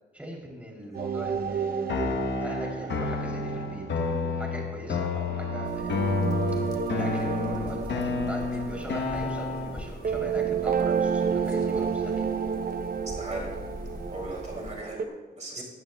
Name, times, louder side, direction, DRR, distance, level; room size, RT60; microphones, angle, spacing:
voice 1, 0.1-2.0 2.4-3.8 4.4-6.2 6.9-12.3 15.6-15.7, right 1 dB, 10° right, -2 dB, 3.2 m, -40 dB
sound 1, 0.9-15.0, right 6 dB, 55° right, 0.7 m, -31 dB
sound 2, 1.9-9.9, left 4 dB, 80° left, 1.1 m, -30 dB
sound 3, 5.6-14.8, left 2 dB, 20° left, 1.8 m, -43 dB
voice 2, 13.0-13.5 14.1-15.6, right 2 dB, 40° right, -1 dB, 2.9 m, -38 dB
18.5 x 14.0 x 2.3 m, 1.3 s
cardioid pair, 95°, 18 cm